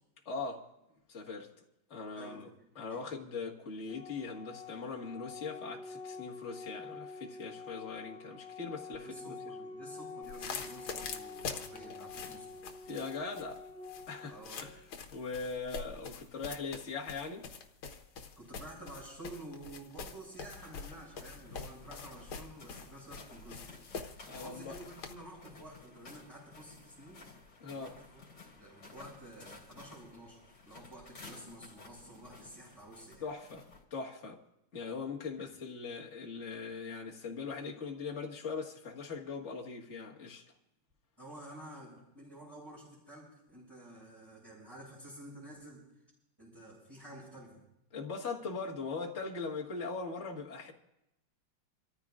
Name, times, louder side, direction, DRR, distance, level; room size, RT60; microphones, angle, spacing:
voice 1, 0.3-0.6 1.1-1.5 1.9-2.5 2.8-9.6 12.9-13.6 14.1-14.8 15.1-17.5 24.2-24.7 27.6-27.9 33.2-34.4 34.7-40.4 47.9-50.7, left 4 dB, 35° left, 1.9 m, -40 dB
Organ, 3.9-14.9, left 4 dB, 80° right, 3.1 m, -47 dB
voice 2, 9.0-12.5 14.3-14.7 18.4-23.8 24.3-27.2 27.7-28.3 28.5-33.2 41.2-45.8 46.4-47.6, right 1 dB, 10° right, 5.9 m, -50 dB
sound 1, 10.2-25.1, left 5 dB, 75° left, 2.0 m, -45 dB
sound 2, 20.4-33.8, left 3 dB, 50° left, 3.8 m, -54 dB
28.5 x 14.0 x 2.5 m
omnidirectional pair, 2.4 m